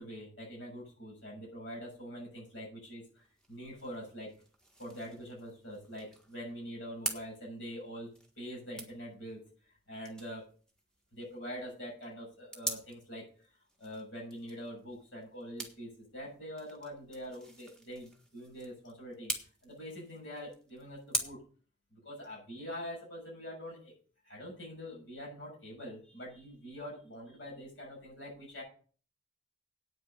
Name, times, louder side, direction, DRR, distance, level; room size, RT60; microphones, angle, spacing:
voice 1, 0.0-4.3 4.8-8.1 8.4-10.4 11.1-13.5 13.8-19.3 19.6-21.4 21.9-23.9 24.2-28.6, equal, 90° left, -3 dB, 6.7 m, -44 dB
sound 1, 3.2-21.2, right 2 dB, 5° left, 1.5 m, -45 dB
9.1 x 6.4 x 7.9 m, 0.41 s
head